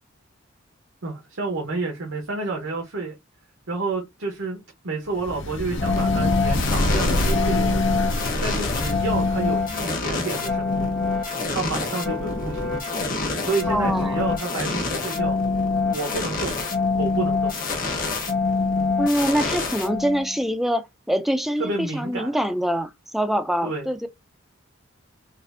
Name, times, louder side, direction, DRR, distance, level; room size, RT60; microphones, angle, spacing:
voice 1, 1.0-3.1 3.7-4.6 4.8-7.8 8.4-10.9 11.5-12.6 13.4-15.4 15.9-16.6 16.9-17.5 21.6-22.3 23.6-23.9, right 3 dB, 75° right, 1.0 m, -30 dB
sound 1, 5.2-9.9, left 1 dB, 65° left, 0.6 m, -26 dB
sound 2, 5.8-20.4, left 4 dB, 45° left, 1.1 m, -25 dB
voice 2, 13.7-14.2 19.0-24.1, equal, ahead, 0.4 m, -24 dB
4.1 x 2.5 x 2.5 m
head